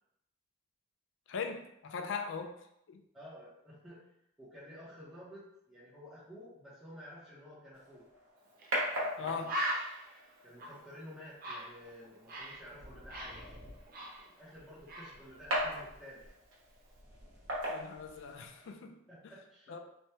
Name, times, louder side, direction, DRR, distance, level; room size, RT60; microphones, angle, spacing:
voice 1, 1.3-2.6 2.9-3.0 9.2-9.5 17.7-19.0 19.7-19.8, left 5 dB, 65° left, 5 dB, 0.4 m, -39 dB
voice 2, 3.1-4.0 4.4-8.0 8.8-9.5 10.4-13.6 14.2-16.3 19.1-19.8, equal, ahead, -11 dB, 0.7 m, -52 dB
sound 1, 7.7-18.7, equal, 70° right, 1.0 m, -41 dB
Bird, 8.6-8.7 9.1-9.2 9.4-12.6 12.9-14.6 14.9-15.2, equal, 45° right, 0.5 m, -39 dB
3.3 x 2.2 x 2.8 m, 0.78 s
head